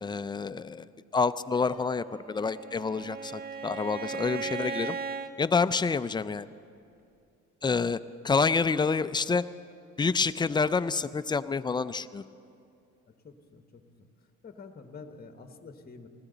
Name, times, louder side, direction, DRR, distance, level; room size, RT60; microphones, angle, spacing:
voice 1, 0.0-0.9 1.1-5.0 5.4-6.5 7.6-8.0 8.2-9.4 10.0-12.2, left 4 dB, 15° left, 13 dB, 0.3 m, -28 dB
Piano, 1.5-3.4, right 1 dB, 5° right, 1.7 m, -50 dB
Bowed string instrument, 2.2-5.4, right 5 dB, 30° right, 0.7 m, -37 dB
voice 2, 13.1-14.1 14.4-16.1, left 4 dB, 30° left, 7 dB, 1.1 m, -48 dB
19.5 x 14.5 x 3.9 m, 2.5 s
cardioid pair, 90°, 30 cm